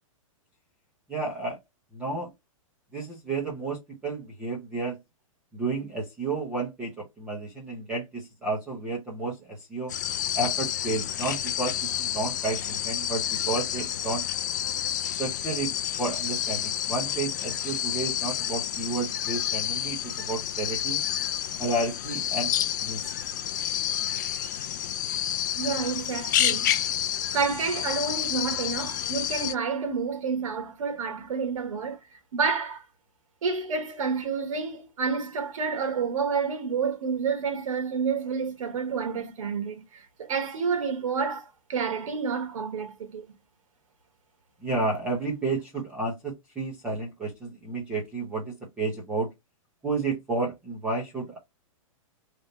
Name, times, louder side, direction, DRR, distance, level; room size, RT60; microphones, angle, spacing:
voice 1, 1.1-1.6 1.9-2.3 2.9-5.0 5.5-9.9 10.3-14.2 15.2-15.7 16.0-21.0 21.6-22.5 22.8-23.1 44.6-49.3 49.8-51.4, right 3 dB, 5° right, 0.8 m, -31 dB
sound 1, 9.9-29.5, left 11 dB, 35° left, 0.3 m, -29 dB
voice 2, 25.6-26.8 27.3-32.0 32.3-32.8 33.4-43.3, right 5 dB, 70° right, 1.4 m, -29 dB
3.3 x 2.7 x 3.9 m
hypercardioid pair, 175°, 18 cm